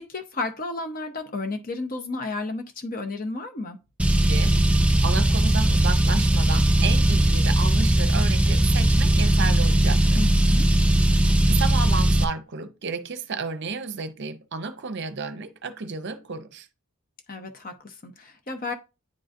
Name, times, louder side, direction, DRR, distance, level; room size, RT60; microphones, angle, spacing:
voice 1, 0.0-3.8 10.1-10.7 17.3-18.7, left 3 dB, 40° left, 0.8 m, -32 dB
Car, 4.0-12.2, right 1 dB, 5° right, 0.3 m, -19 dB
voice 2, 4.3-10.2 11.1-16.7, right 4 dB, 55° right, 0.6 m, -32 dB
9.6 x 3.9 x 2.5 m
head